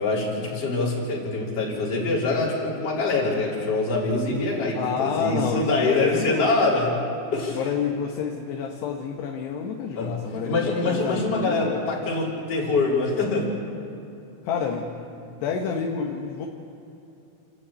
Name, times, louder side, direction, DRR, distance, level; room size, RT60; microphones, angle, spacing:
voice 1, 0.0-7.0 7.3-7.6 10.0-13.5, left 3 dB, 40° left, -5 dB, 4.7 m, -24 dB
voice 2, 4.8-6.7 7.5-11.8 14.4-14.9 15.3-16.5, left 6 dB, 80° left, 1 dB, 3.4 m, -29 dB
29.5 x 11.0 x 8.7 m, 2.9 s
omnidirectional pair, 4.7 m